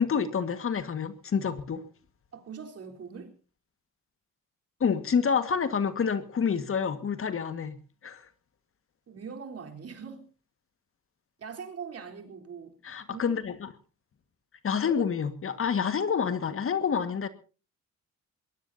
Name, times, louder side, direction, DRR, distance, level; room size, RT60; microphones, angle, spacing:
voice 1, 0.0-1.8 4.8-7.8 8.0-8.3 12.8-13.7 14.6-17.3, left 6 dB, 45° left, 11 dB, 1.8 m, -28 dB
voice 2, 2.3-3.4 9.1-10.3 11.4-12.8 13.1-13.5, right 6 dB, 50° right, 3 dB, 3.9 m, -42 dB
22.5 x 20.0 x 2.7 m, 0.36 s
cardioid pair, 90°, 30 cm